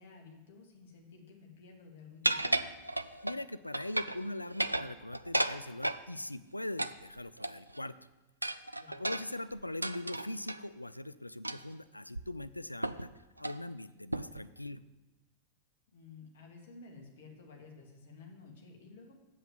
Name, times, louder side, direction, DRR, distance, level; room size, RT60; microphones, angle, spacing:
voice 1, 0.0-2.7 8.8-9.0 15.9-19.2, left 4 dB, 55° left, 0 dB, 2.5 m, -53 dB
sound 1, 2.2-3.4 3.7-4.2 4.5-6.0 6.8-7.8 8.4-10.6 11.4-11.8 12.1-12.2 12.8-13.1 13.4-13.6 14.1-14.5, right 1 dB, 85° right, 0.4 m, -34 dB
voice 2, 3.2-7.9 8.9-13.1 13.4-14.8, left 1 dB, 85° left, 15 dB, 0.4 m, -41 dB
8.0 x 7.7 x 7.6 m, 1.1 s
figure-of-eight pair, 90°, 0 cm